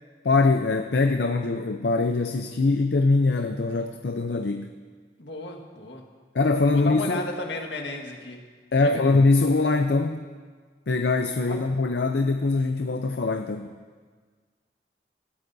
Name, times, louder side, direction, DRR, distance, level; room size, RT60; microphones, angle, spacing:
voice 1, 0.2-4.7 6.3-7.2 8.7-10.2 10.9-13.7, left 3 dB, 75° left, 6 dB, 0.5 m, -22 dB
voice 2, 5.2-6.0 6.7-8.4 8.7-9.0 11.4-11.6, left 2 dB, 90° left, 2 dB, 1.7 m, -34 dB
19.5 x 14.0 x 2.7 m, 1.6 s
head